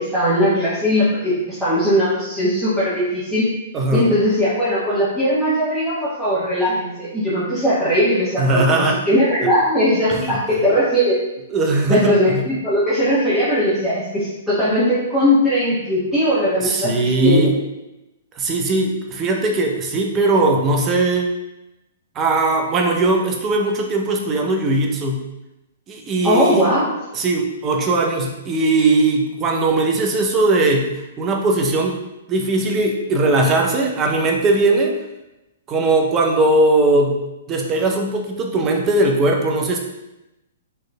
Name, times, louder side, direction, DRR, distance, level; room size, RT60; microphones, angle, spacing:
voice 1, 0.0-3.5 3.9-11.2 11.9-17.5 26.2-26.9, equal, 5° right, -14 dB, 1.2 m, -19 dB
voice 2, 3.7-4.1 8.4-9.0 10.1-10.4 11.5-12.4 16.6-17.5 18.4-21.3 22.2-25.3 25.9-26.7 27.1-32.0 32.3-34.9 35.7-37.2 37.5-39.8, right 2 dB, 25° right, 1 dB, 0.6 m, -19 dB
4.4 x 3.1 x 2.3 m, 0.95 s
figure-of-eight pair, 115°, 0 cm